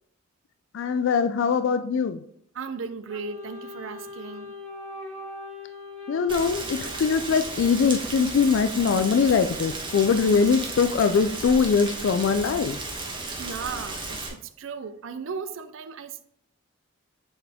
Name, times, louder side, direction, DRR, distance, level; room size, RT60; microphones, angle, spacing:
voice 1, 0.7-2.2 6.1-12.8, left 5 dB, 65° left, 0.3 m, -22 dB
voice 2, 2.5-4.6 13.1-16.2, right 5 dB, 70° right, 0.4 m, -36 dB
Wind instrument woodwind instrument, 3.1-7.7, left 3 dB, 15° left, 1.8 m, -41 dB
Rain, 6.3-14.3, right 3 dB, 25° right, 1.1 m, -34 dB
6.9 x 4.1 x 3.5 m
head